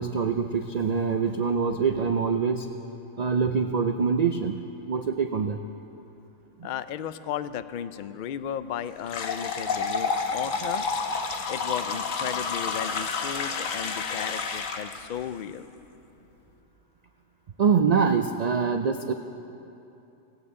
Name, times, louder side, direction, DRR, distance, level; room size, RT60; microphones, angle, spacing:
voice 1, 0.0-2.7 3.2-4.6 4.9-5.6 17.6-19.1, right 6 dB, 80° right, 6 dB, 0.3 m, -24 dB
voice 2, 6.6-10.8 11.5-15.7, left 9 dB, 65° left, 13 dB, 0.4 m, -35 dB
sound 1, 9.0-15.0, left 4 dB, 90° left, 1.3 m, -30 dB
19.0 x 16.0 x 3.7 m, 2.9 s
omnidirectional pair, 1.3 m